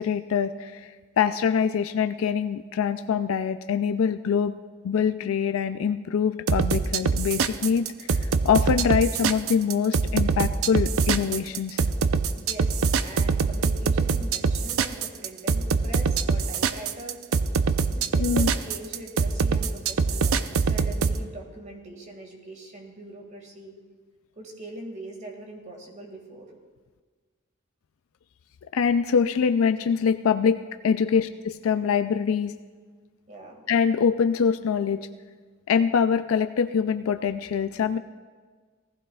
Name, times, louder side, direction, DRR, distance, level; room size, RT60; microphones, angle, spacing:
voice 1, 0.0-4.5 4.8-11.8 18.2-18.5 28.7-30.6 30.8-32.5 33.7-35.0 35.7-38.0, left 6 dB, 75° left, 10 dB, 0.4 m, -24 dB
sound 1, 6.5-21.2, right 5 dB, 80° right, 0.5 m, -23 dB
voice 2, 12.4-17.2 17.9-23.8 24.4-26.5 31.0-31.2 33.3-33.6, right 1 dB, 35° right, 2 dB, 1.9 m, -42 dB
18.5 x 15.0 x 2.3 m, 1.5 s
head